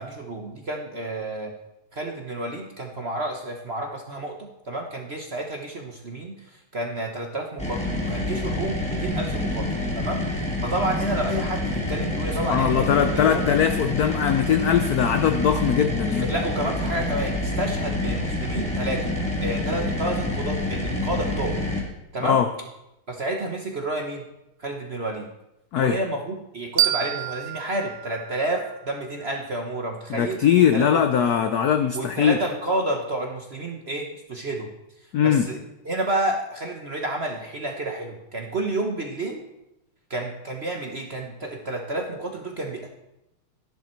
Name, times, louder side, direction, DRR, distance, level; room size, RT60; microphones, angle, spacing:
voice 1, 0.0-1.5 1.9-6.4 6.7-9.7 9.9-10.2 10.6-13.4 16.1-19.1 19.4-21.6 22.1-22.4 23.1-24.2 24.6-25.3 25.8-30.4 30.7-31.0 31.9-34.7 35.2-35.6 35.8-39.4 40.1-42.9, right 1 dB, 40° right, 2 dB, 1.0 m, -30 dB
sound 1, 7.6-21.8, left 2 dB, 5° left, 2.5 m, -27 dB
voice 2, 12.5-16.3 22.2-22.5 25.7-26.0 30.1-32.4 35.1-35.5, left 8 dB, 70° left, 8 dB, 0.9 m, -21 dB
sound 2, 26.8-29.6, right 13 dB, 85° right, 1.6 m, -28 dB
13.5 x 11.0 x 4.5 m, 0.90 s
omnidirectional pair, 2.4 m